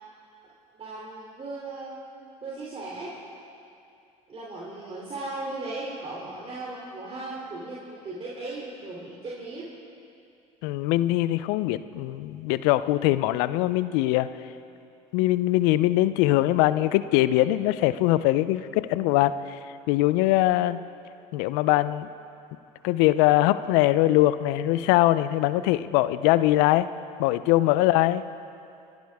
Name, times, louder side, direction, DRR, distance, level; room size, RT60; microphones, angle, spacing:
voice 1, 0.8-2.0 2.4-3.2 4.3-9.7 28.1-28.3, right 2 dB, 35° right, -5 dB, 3.1 m, -37 dB
voice 2, 10.6-14.3 15.1-19.6 19.9-20.8 21.3-22.1 22.8-26.9 27.2-28.2, left 16 dB, 70° left, 14 dB, 0.6 m, -22 dB
29.5 x 11.5 x 3.6 m, 2.6 s
hypercardioid pair, 75°, 17 cm